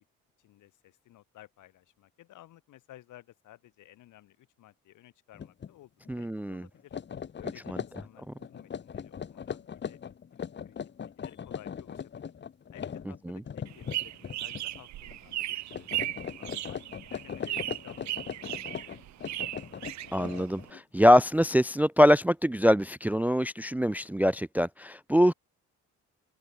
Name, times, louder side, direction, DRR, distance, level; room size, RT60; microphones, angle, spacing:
voice 1, 0.4-5.9 6.2-6.9 7.3-10.0 10.3-10.8 11.0-12.3 12.7-18.5 18.8-19.3, left 14 dB, 85° left, 5.1 m, -55 dB
sound 1, 5.3-5.7 6.1-6.2 6.8-14.8 15.1-15.4 15.7-20.8, left 7 dB, 35° left, 1.0 m, -39 dB
voice 2, 6.1-6.6 13.3-13.4 20.1-25.3, equal, 5° right, 0.4 m, -23 dB
sound 2, 13.7-20.7, right 15 dB, 65° right, 0.6 m, -37 dB
open air
cardioid pair, 90°, 30 cm